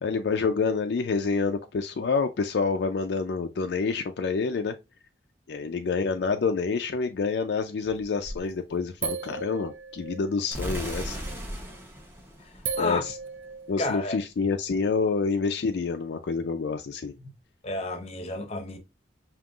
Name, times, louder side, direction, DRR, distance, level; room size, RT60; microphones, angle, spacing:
voice 1, 0.0-4.8 5.5-11.2 12.8-13.1 13.7-17.1, left 4 dB, 70° left, 0.4 m, -27 dB
sound 1, 7.8-8.5 9.0-10.7 11.8-12.1 12.7-13.9, right 5 dB, 85° right, 0.5 m, -36 dB
sound 2, 10.5-13.4, equal, 10° right, 0.7 m, -36 dB
voice 2, 13.8-14.2 17.2-17.3 17.6-18.8, left 2 dB, 35° left, 0.7 m, -31 dB
5.3 x 2.8 x 2.3 m
head